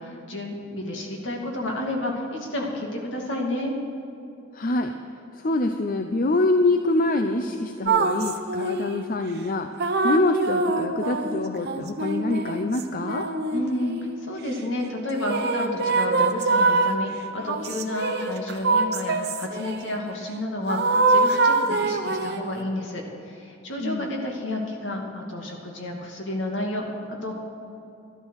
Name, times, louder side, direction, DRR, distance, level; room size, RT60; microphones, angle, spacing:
voice 1, 0.0-3.8 13.5-13.9 14.2-27.4, left 1 dB, 65° left, 1 dB, 2.4 m, -31 dB
voice 2, 4.5-4.9 5.4-13.3 23.8-24.1, left 2 dB, 45° left, 6 dB, 0.6 m, -25 dB
sound 1, 7.9-9.0 9.8-14.1 15.2-17.0 17.5-19.8 20.7-22.5, right 3 dB, 55° right, 0.9 m, -24 dB
13.0 x 12.0 x 6.5 m, 2.7 s
head